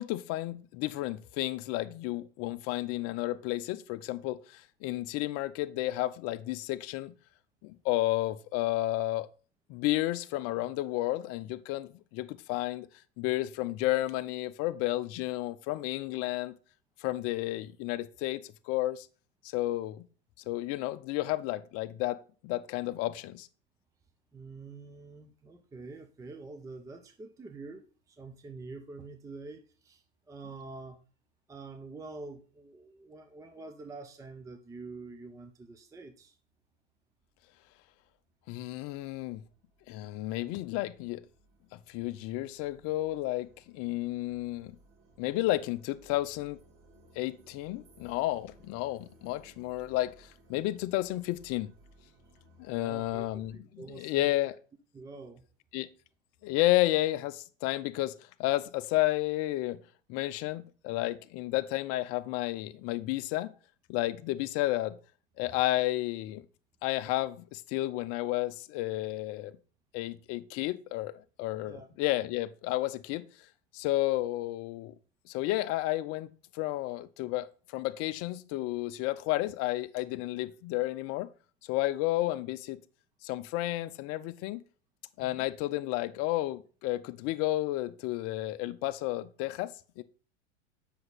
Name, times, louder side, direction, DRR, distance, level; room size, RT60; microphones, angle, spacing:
voice 1, 0.0-7.1 7.6-9.3 9.7-12.9 13.2-16.5 17.0-19.1 19.4-20.1 20.5-23.5 38.5-39.4 39.9-41.2 41.7-44.8 45.2-46.6 47.2-51.7 52.6-54.6 55.7-55.9 56.4-59.8 60.1-63.5 63.9-65.0 65.4-66.5 66.8-69.5 69.9-73.2 73.7-74.9 75.3-77.5 77.7-81.3 81.6-82.8 83.2-84.6 85.2-90.0, left 16 dB, 40° left, 0.7 m, -32 dB
voice 2, 24.3-31.0 31.5-36.4 52.7-54.5 54.9-55.5 71.6-71.9 85.2-85.5, right 3 dB, 10° right, 0.6 m, -46 dB
sound 1, 36.6-36.7 37.2-53.6, right 1 dB, 45° right, 2.2 m, -61 dB
7.7 x 6.0 x 4.1 m
hypercardioid pair, 105°, 35 cm